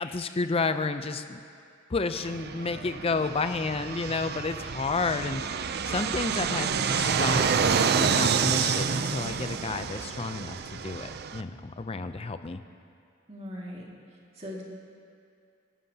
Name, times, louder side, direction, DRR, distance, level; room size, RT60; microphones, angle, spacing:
voice 1, 0.0-1.4 1.9-7.5 8.0-12.6, left 3 dB, 30° left, 10 dB, 0.5 m, -31 dB
Fixed-wing aircraft airplane, 2.1-11.4, right 6 dB, 50° right, 0.5 m, -28 dB
voice 2, 13.3-13.8 14.4-14.6, left 1 dB, 30° right, -3 dB, 2.1 m, -39 dB
28.0 x 11.0 x 2.8 m, 2.4 s
head